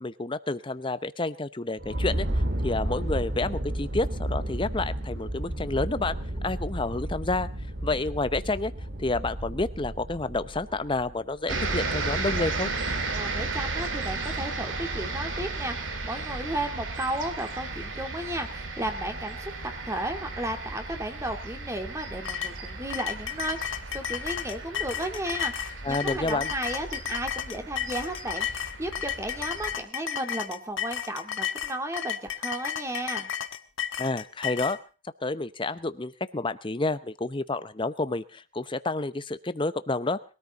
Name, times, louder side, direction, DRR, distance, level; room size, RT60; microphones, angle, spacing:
voice 1, 0.0-6.2 6.4-7.5 7.8-8.7 9.0-12.7 25.8-26.5 34.0-34.8 35.2-40.2, left 2 dB, 25° left, 13 dB, 0.8 m, -29 dB
sound 1, 1.8-11.4, right 1 dB, 60° right, 1.9 m, -32 dB
sound 2, 11.5-29.8, right 3 dB, 80° right, 2.2 m, -34 dB
voice 2, 13.2-19.5 19.9-33.3, right 1 dB, 15° right, 6 dB, 2.1 m, -34 dB
Milk Bottles clanking, 22.3-34.8, left 9 dB, 80° left, 1.2 m, -33 dB
22.0 x 13.5 x 4.1 m, 0.35 s
head